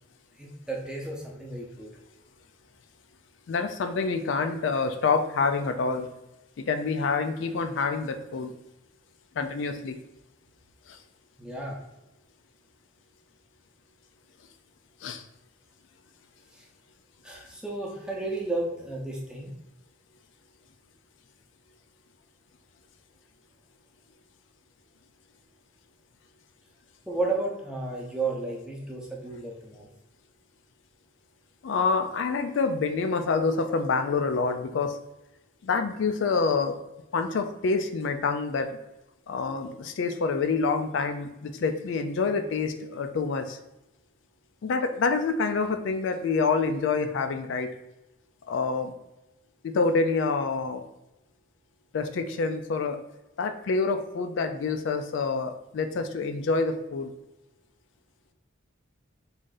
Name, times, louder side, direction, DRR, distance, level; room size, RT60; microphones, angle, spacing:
voice 1, 0.4-1.9 11.4-11.8 16.5-16.7 17.2-19.5 27.1-29.9, right 2 dB, 5° right, -2 dB, 0.6 m, -33 dB
voice 2, 3.5-6.1 6.6-8.5 9.4-10.0 10.9-11.0 15.0-15.2 31.6-35.0 35.6-36.8 37.1-38.7 39.3-43.6 44.6-47.7 48.5-48.9 49.6-50.8 51.9-53.0 53.4-57.1, left 4 dB, 70° left, 8 dB, 0.3 m, -27 dB
3.7 x 2.6 x 3.8 m, 0.96 s
head